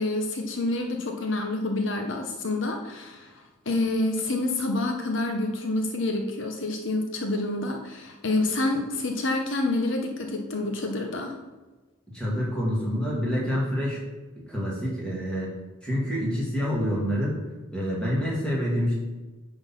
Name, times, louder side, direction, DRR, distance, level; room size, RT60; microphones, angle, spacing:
voice 1, 0.0-11.3, left 2 dB, 65° left, 3 dB, 0.9 m, -28 dB
voice 2, 12.1-14.0 14.5-15.6 15.8-17.4 17.7-18.9, equal, 5° left, -6 dB, 2.3 m, -27 dB
9.0 x 3.9 x 6.0 m, 1.2 s
head